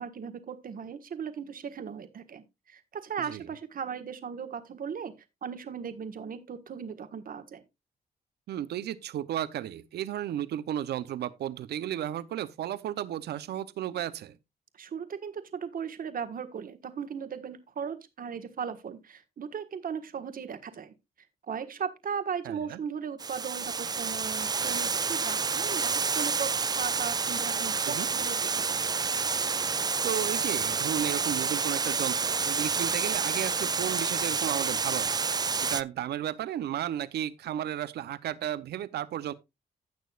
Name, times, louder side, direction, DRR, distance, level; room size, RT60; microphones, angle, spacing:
voice 1, 0.0-5.1 5.4-7.6 14.7-20.9 21.5-28.8, right 7 dB, 60° right, 1.4 m, -37 dB
voice 2, 8.5-14.4 22.4-22.8 27.9-28.1 30.0-35.1 35.6-39.3, right 11 dB, 80° right, 0.7 m, -33 dB
Water, 23.2-35.8, right 5 dB, 25° right, 0.4 m, -29 dB
16.0 x 6.3 x 2.4 m
cardioid pair, 75°, 17 cm